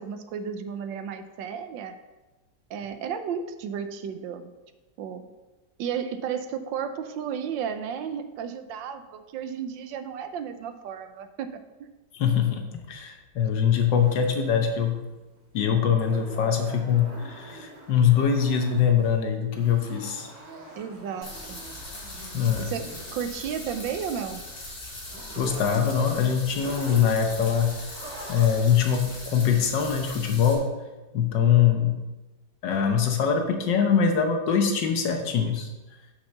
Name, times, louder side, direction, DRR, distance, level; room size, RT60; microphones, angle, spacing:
voice 1, 0.0-1.9 2.7-4.5 5.0-5.3 5.8-11.5 20.8-21.6 22.6-24.4, right 7 dB, 85° right, 9 dB, 1.4 m, -33 dB
voice 2, 12.1-12.6 12.9-15.0 15.5-20.3 22.3-22.7 25.4-27.7 28.3-30.7 31.1-32.0 32.6-35.7, left 7 dB, 75° left, 4 dB, 1.6 m, -23 dB
sound 1, 13.8-29.0, right 2 dB, 65° right, 2.1 m, -45 dB
sound 2, 21.2-30.5, left 1 dB, 55° left, 3.1 m, -40 dB
5.9 x 5.8 x 6.6 m, 1.1 s
omnidirectional pair, 2.0 m